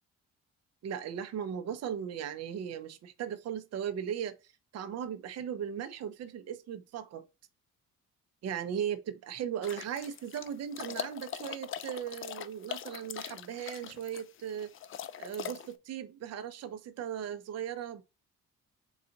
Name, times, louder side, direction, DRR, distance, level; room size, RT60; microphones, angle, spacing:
voice 1, 0.8-4.4 4.7-7.2 8.4-14.7 15.2-18.0, right 9 dB, 60° right, 0.6 m, -37 dB
sound 1, 9.6-15.7, left 9 dB, 45° left, 0.4 m, -42 dB
3.9 x 2.4 x 3.9 m
cardioid pair, 90°, 30 cm